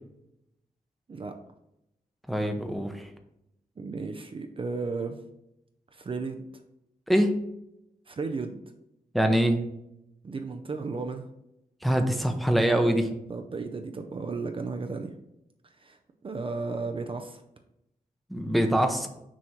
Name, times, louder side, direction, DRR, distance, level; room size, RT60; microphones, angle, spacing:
voice 1, 2.3-3.1 7.1-7.4 9.1-9.6 11.8-13.1 18.3-19.1, equal, ahead, 5 dB, 0.7 m, -24 dB
voice 2, 3.8-5.2 5.9-6.4 8.1-8.6 10.2-11.3 13.3-15.1 15.7-16.0 16.2-17.4, right 4 dB, 35° right, 6 dB, 0.5 m, -34 dB
6.2 x 3.0 x 5.8 m, 0.82 s
wide cardioid pair, 110°, 15 cm